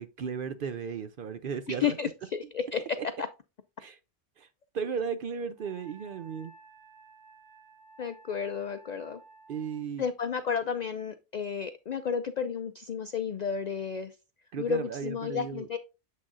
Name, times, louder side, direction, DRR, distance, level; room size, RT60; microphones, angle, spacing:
voice 1, 0.0-2.0 3.0-3.1 3.8-4.0 4.4-4.5 4.7-6.5 9.5-10.1 14.5-15.7, right 6 dB, 60° right, 0.6 m, -35 dB
voice 2, 1.8-2.8 8.0-9.2 10.0-14.1 14.6-15.8, left 7 dB, 75° left, 0.3 m, -32 dB
Wind instrument woodwind instrument, 5.6-9.9, right 3 dB, 5° left, 1.7 m, -54 dB
7.5 x 6.2 x 2.5 m
omnidirectional pair, 1.3 m